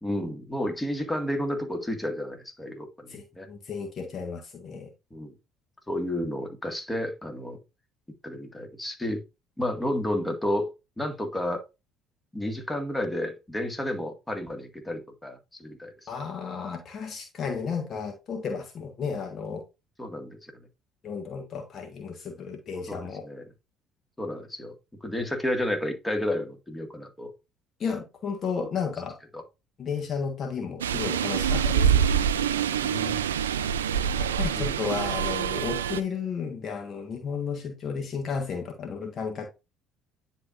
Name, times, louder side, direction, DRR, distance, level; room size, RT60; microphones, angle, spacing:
voice 1, 0.0-3.5 5.1-5.3 5.9-7.6 8.2-9.2 9.6-10.7 11.0-11.6 12.3-16.1 20.0-20.7 22.9-23.4 24.2-24.7 25.0-27.3 28.6-28.7 29.3-29.4 32.8-33.2 34.5-34.7, left 1 dB, 15° left, 1.9 m, -31 dB
voice 2, 3.1-4.9 16.1-19.6 21.0-23.2 27.8-29.2 29.8-32.0 34.1-39.5, left 6 dB, 45° left, 1.4 m, -33 dB
sound 1, 30.8-36.0, right 8 dB, 85° right, 0.4 m, -25 dB
9.8 x 4.4 x 2.5 m
hypercardioid pair, 55°, 0 cm